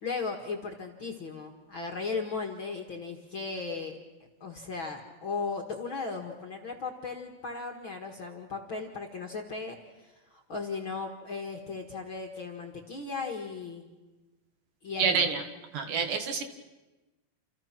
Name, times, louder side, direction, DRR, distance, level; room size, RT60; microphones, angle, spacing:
voice 1, 0.0-4.0 4.4-13.9 14.8-15.3, left 4 dB, 45° left, 2 dB, 2.0 m, -36 dB
voice 2, 15.0-15.4 15.7-16.4, right 6 dB, 65° right, 7 dB, 3.0 m, -27 dB
29.0 x 29.0 x 6.0 m, 1.1 s
omnidirectional pair, 4.3 m